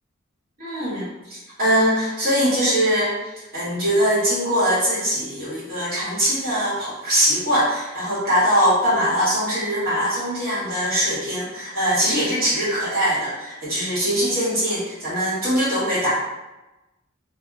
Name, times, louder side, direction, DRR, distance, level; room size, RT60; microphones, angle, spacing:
voice 1, 0.6-3.1 3.5-16.1, equal, 45° right, -9 dB, 1.2 m, -22 dB
2.2 x 2.1 x 3.5 m, 1.0 s
head